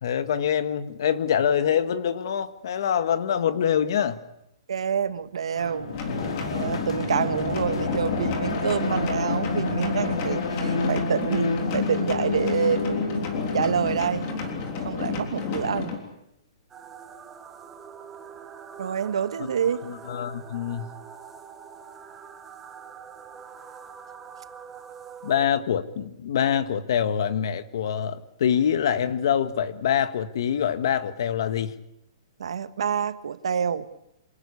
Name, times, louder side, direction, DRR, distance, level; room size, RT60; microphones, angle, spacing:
voice 1, 0.0-4.2 19.4-19.5 19.8-20.9 25.2-31.7, left 8 dB, 45° left, 11 dB, 1.6 m, -25 dB
voice 2, 4.7-5.9 6.5-13.3 13.5-14.3 14.8-15.9 18.8-19.8 32.4-33.9, right 7 dB, 75° right, 12 dB, 1.6 m, -27 dB
sound 1, 5.6-14.8, left 3 dB, 80° left, 4.3 m, -30 dB
sound 2, 5.9-16.0, left 5 dB, 25° left, 3.5 m, -31 dB
sound 3, 16.7-25.5, right 7 dB, 10° right, 1.5 m, -44 dB
27.0 x 18.5 x 8.6 m, 0.83 s
hypercardioid pair, 180°, 3 cm